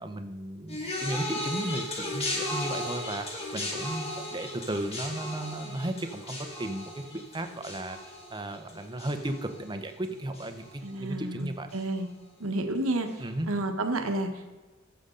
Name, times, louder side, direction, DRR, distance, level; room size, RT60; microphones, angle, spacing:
voice 1, 0.0-11.7 13.2-13.5, right 1 dB, 20° right, 7 dB, 0.9 m, -35 dB
sound 1, 0.7-10.1 10.3-10.9 11.7-11.8, left 1 dB, 30° left, 2.1 m, -36 dB
voice 2, 10.8-12.1 12.4-14.5, right 2 dB, 70° right, 6 dB, 1.3 m, -31 dB
15.5 x 7.0 x 3.9 m, 1.3 s
head